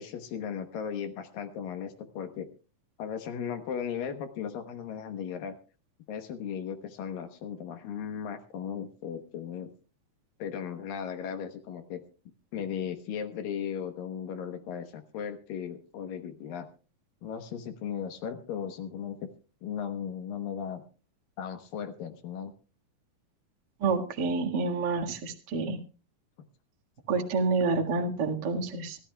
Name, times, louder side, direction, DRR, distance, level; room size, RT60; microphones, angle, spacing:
voice 1, 0.0-2.5 3.0-5.5 6.1-9.7 10.4-12.0 12.5-16.7 17.2-19.3 19.6-20.8 21.4-22.5, left 8 dB, 70° left, 7 dB, 2.7 m, -36 dB
voice 2, 23.8-25.8 27.1-29.0, right 4 dB, 45° right, 2 dB, 1.5 m, -28 dB
25.5 x 13.5 x 2.3 m, 0.35 s
omnidirectional pair, 4.4 m